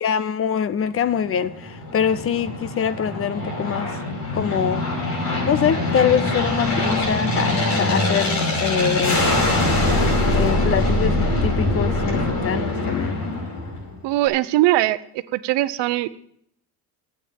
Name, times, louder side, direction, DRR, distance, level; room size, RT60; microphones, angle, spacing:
voice 1, 0.0-4.0 4.3-4.8 5.5-9.3 10.3-13.2, left 8 dB, 35° left, 0.6 m, -24 dB
Aircraft, 1.2-14.0, left 2 dB, 55° left, 5.3 m, -23 dB
voice 2, 14.0-15.0 15.3-16.1, right 16 dB, 75° right, 0.8 m, -20 dB
12.5 x 8.8 x 7.3 m
cardioid pair, 150°, 42 cm